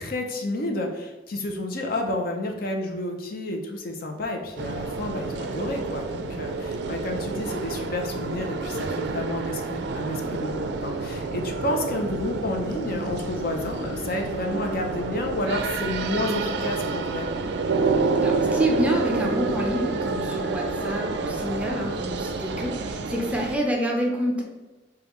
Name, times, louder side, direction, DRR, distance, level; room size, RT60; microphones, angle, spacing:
voice 1, 0.0-17.3, left 1 dB, 55° left, 3 dB, 0.6 m, -30 dB
sound 1, 4.6-23.6, right 4 dB, 65° right, 0.4 m, -29 dB
voice 2, 18.2-24.4, equal, 5° right, -1 dB, 0.5 m, -27 dB
5.2 x 2.3 x 3.0 m, 1.2 s
head